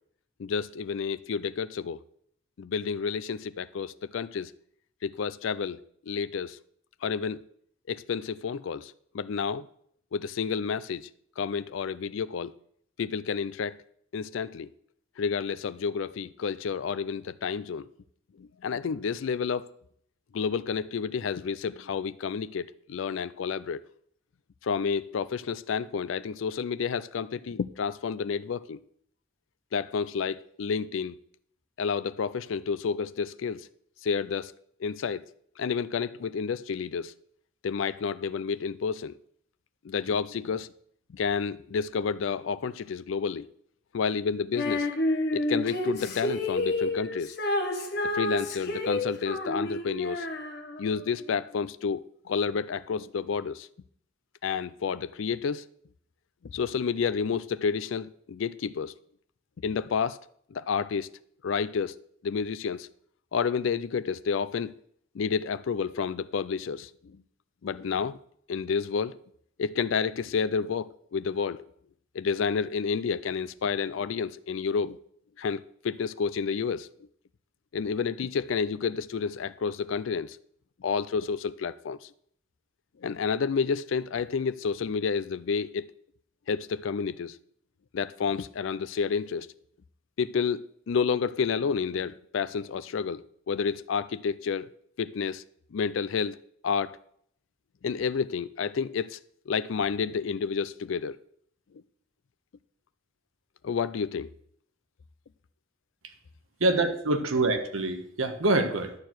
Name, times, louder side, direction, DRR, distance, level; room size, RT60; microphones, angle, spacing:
voice 1, 0.4-2.0 2.6-4.5 5.0-5.8 6.1-6.6 7.0-7.4 7.9-9.7 10.1-11.1 11.4-12.5 13.0-13.8 14.1-14.7 15.2-17.9 18.4-19.7 20.3-23.8 24.6-28.8 29.7-31.2 31.8-33.7 34.0-34.5 34.8-35.2 35.6-37.1 37.6-39.1 39.8-40.7 41.1-43.5 43.9-44.9 45.3-47.4 48.1-50.3 50.8-53.7 54.4-55.6 56.5-58.9 59.6-60.2 60.5-61.1 61.4-62.0 62.2-62.9 63.3-64.7 65.1-67.2 67.6-68.2 68.5-69.2 69.6-71.6 72.1-75.0 75.4-76.9 77.7-80.4 80.8-82.0 83.0-85.9 86.5-87.4 87.9-89.5 90.2-94.7 95.0-95.4 95.7-96.4 96.6-97.0 97.8-99.2 99.5-101.2 103.6-104.3, left 6 dB, 70° left, 0.4 m, -30 dB
Female singing, 44.5-51.0, left 1 dB, 50° left, 1.3 m, -30 dB
voice 2, 106.6-108.9, right 2 dB, 85° right, 1.3 m, -25 dB
11.5 x 4.6 x 7.6 m
head